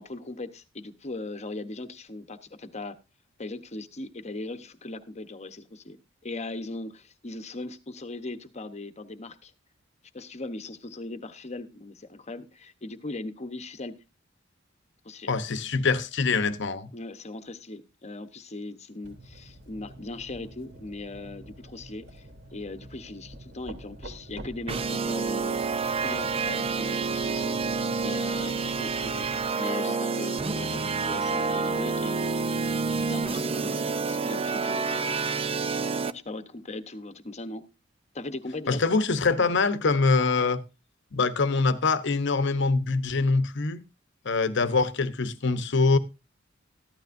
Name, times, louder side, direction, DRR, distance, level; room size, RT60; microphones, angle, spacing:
voice 1, 0.0-3.0 3.4-6.0 6.2-9.5 10.1-13.9 15.0-15.3 16.9-22.3 22.5-27.6 28.0-32.3 33.0-35.2 36.1-37.6 38.1-38.8, left 2 dB, 35° left, 1.0 m, -39 dB
voice 2, 15.3-16.9 38.7-40.6 41.1-43.8 44.2-46.0, left 4 dB, 65° left, 0.9 m, -24 dB
sound 1, 19.0-29.5, right 1 dB, 65° right, 3.0 m, -47 dB
sound 2, 24.7-36.1, right 4 dB, 30° right, 0.5 m, -28 dB
14.5 x 12.0 x 2.6 m
head